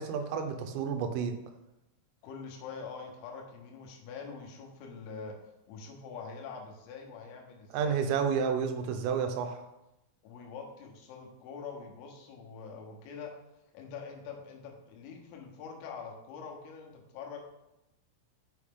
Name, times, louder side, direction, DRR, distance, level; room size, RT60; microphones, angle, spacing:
voice 1, 0.0-1.4 7.7-9.6, right 6 dB, 85° right, 6 dB, 3.3 m, -30 dB
voice 2, 2.2-5.4 5.7-8.1 10.2-13.3 13.7-17.4, left 5 dB, 85° left, 1 dB, 3.8 m, -44 dB
6.9 x 6.4 x 3.7 m, 0.91 s
omnidirectional pair, 5.8 m